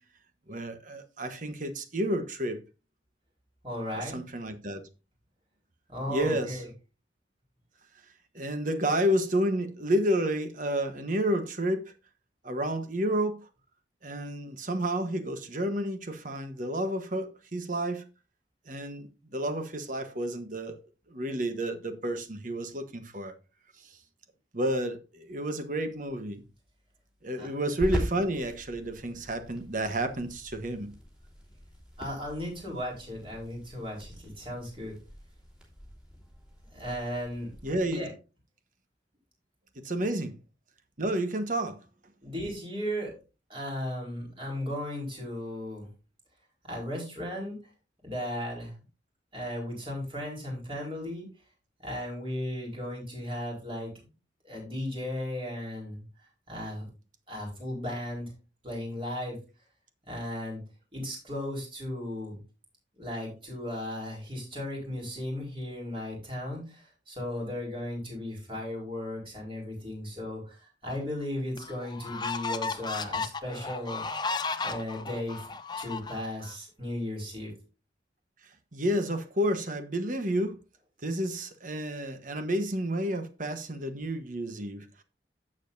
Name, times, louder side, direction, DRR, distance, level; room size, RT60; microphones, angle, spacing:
voice 1, 0.5-2.6 3.9-4.9 6.1-6.6 8.3-11.9 12.4-13.4 14.0-18.0 18.7-20.8 21.1-23.3 23.8-24.0 24.5-26.4 27.2-30.9 37.6-38.0 39.8-40.3 41.0-41.8 78.7-80.6 81.0-85.0, right 1 dB, 45° right, 1.2 m, -30 dB
voice 2, 3.6-4.2 5.9-6.7 27.4-27.5 32.0-34.9 36.7-37.5 37.9-38.1 39.9-40.0 42.2-43.1 43.5-45.9 46.7-47.6 48.0-48.8 49.3-51.2 51.8-53.9 54.4-56.9 57.3-58.3 58.6-59.4 60.1-60.6 60.9-62.4 63.0-74.0 74.6-75.5 75.8-77.5, left 1 dB, 30° right, 4.5 m, -36 dB
sound 1, 25.7-37.9, equal, 5° right, 3.0 m, -42 dB
sound 2, 70.9-71.0 71.6-76.5, left 4 dB, 25° left, 0.6 m, -34 dB
11.5 x 7.6 x 2.7 m
head